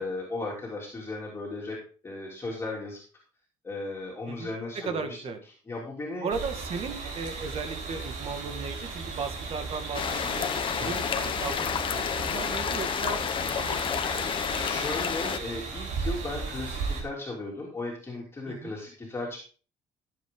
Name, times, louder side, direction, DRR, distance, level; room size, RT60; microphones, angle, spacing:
voice 1, 0.0-1.8 2.0-3.0 3.6-5.2 5.7-6.3 10.8-11.1 14.6-19.4, left 2 dB, 20° left, -3 dB, 3.2 m, -36 dB
voice 2, 4.3-5.4 6.2-10.5 10.8-12.1 12.3-13.2 13.7-13.8 14.2-14.5 18.5-18.7, right 5 dB, 50° right, 7 dB, 2.0 m, -36 dB
sound 1, 6.3-17.0, right 4 dB, 75° right, 3.4 m, -36 dB
sound 2, 9.9-15.4, left 7 dB, 40° left, 1.0 m, -30 dB
15.0 x 7.7 x 3.9 m, 0.39 s
cardioid pair, 130°, 13 cm